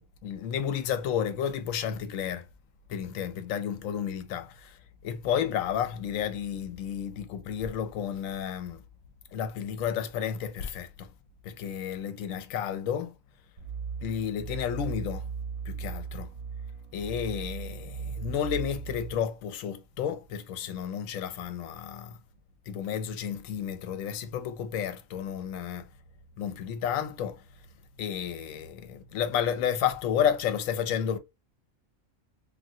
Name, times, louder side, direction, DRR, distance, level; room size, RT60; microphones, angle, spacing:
voice 1, 0.0-2.5 2.9-4.8 5.0-8.8 9.3-11.1 11.4-13.1 14.0-15.3 15.7-16.3 16.9-22.1 22.7-25.9 26.4-27.4 28.0-31.2, left 8 dB, 80° left, 1.0 m, -31 dB
sound 1, 13.6-19.1, right 6 dB, 65° right, 0.9 m, -37 dB
3.2 x 2.4 x 2.7 m
omnidirectional pair, 1.4 m